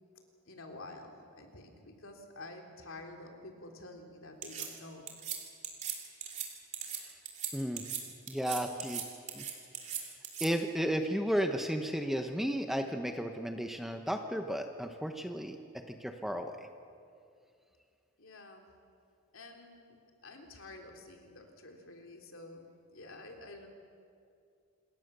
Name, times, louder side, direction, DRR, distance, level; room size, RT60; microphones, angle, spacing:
voice 1, 0.5-5.0 18.2-18.7 19.3-20.0 20.2-23.7, left 2 dB, 65° left, 3 dB, 3.3 m, -49 dB
sound 1, 4.4-4.7 5.1-5.4 5.6-5.9 6.2-6.5 6.7-7.0 7.2-7.5 7.8-8.0 8.3-9.0 9.3-10.5, right 9 dB, 30° right, 3.1 m, -38 dB
voice 2, 7.5-7.8 8.3-9.0 9.3-9.4 10.4-15.6 15.9-16.5, equal, ahead, 5 dB, 1.0 m, -33 dB
27.0 x 22.0 x 6.9 m, 2.4 s
head